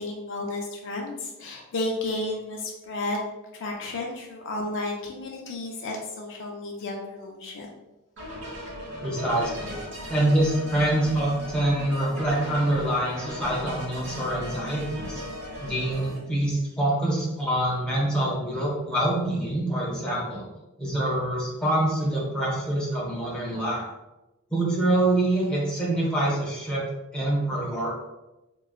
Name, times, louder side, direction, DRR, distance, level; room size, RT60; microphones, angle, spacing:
voice 1, 0.0-3.2 3.5-7.7, left 2 dB, 55° left, 0 dB, 0.4 m, -32 dB
sound 1, 8.2-16.2, equal, 60° right, 1.2 m, -37 dB
voice 2, 9.0-9.8 10.1-15.2 15.6-20.5 20.8-23.8 24.5-26.9 27.1-27.9, right 1 dB, 5° left, -5 dB, 0.9 m, -25 dB
3.8 x 2.2 x 2.4 m, 1.0 s
head